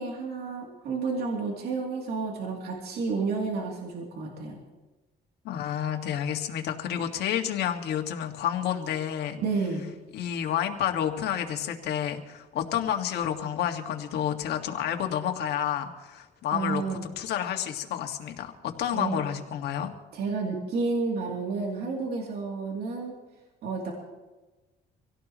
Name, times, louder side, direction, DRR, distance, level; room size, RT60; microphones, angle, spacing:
voice 1, 0.0-4.6 9.4-9.9 16.5-17.0 18.9-19.2 20.1-23.1 23.6-23.9, right 4 dB, 70° right, -1 dB, 3.0 m, -31 dB
voice 2, 5.4-9.4 10.1-19.9, left 9 dB, 75° left, 4 dB, 1.9 m, -30 dB
26.0 x 17.0 x 3.1 m, 1.2 s
cardioid pair, 110°, 17 cm